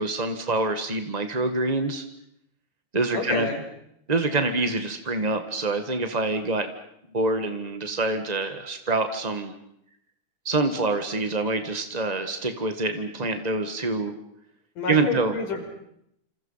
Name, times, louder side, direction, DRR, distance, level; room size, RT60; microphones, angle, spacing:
voice 1, 0.0-2.0 2.9-3.5 4.1-6.7 7.1-9.5 10.4-14.2 14.9-15.3, right 3 dB, 30° right, 7 dB, 0.7 m, -26 dB
voice 2, 3.1-3.6 14.8-15.6, left 4 dB, 70° left, 4 dB, 6.7 m, -28 dB
28.0 x 27.5 x 5.7 m, 0.75 s
omnidirectional pair, 3.8 m